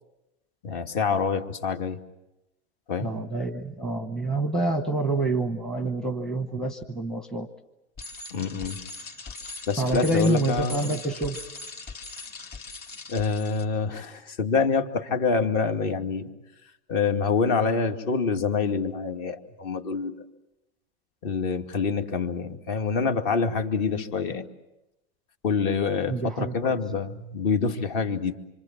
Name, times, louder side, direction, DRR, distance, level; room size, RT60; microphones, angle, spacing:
voice 1, 0.6-2.0 2.9-3.1 8.3-8.8 9.7-10.9 13.1-16.3 16.9-20.2 21.2-24.5 25.4-28.4, left 5 dB, 50° left, 6 dB, 2.4 m, -26 dB
voice 2, 3.0-7.5 9.8-11.4 26.1-26.8, right 2 dB, ahead, 8 dB, 0.9 m, -27 dB
Bicycle, 8.0-13.6, left 3 dB, 25° left, 2.7 m, -40 dB
26.0 x 25.5 x 7.5 m, 0.93 s
supercardioid pair, 150°, 35 cm